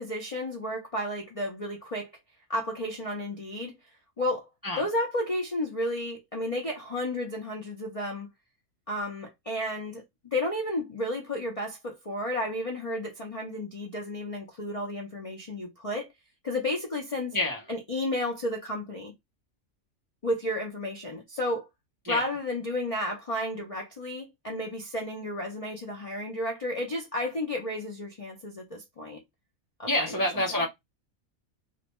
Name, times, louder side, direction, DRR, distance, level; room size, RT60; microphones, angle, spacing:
voice 1, 0.0-2.1 2.5-3.7 4.2-4.5 4.8-8.3 8.9-16.1 16.4-17.4 17.7-19.1 20.2-21.7 22.1-29.2 29.8-30.2, left 1 dB, 50° left, 0.4 m, -32 dB
voice 2, 29.9-30.7, left 1 dB, 30° right, 0.4 m, -27 dB
2.5 x 2.1 x 2.9 m
omnidirectional pair, 1.4 m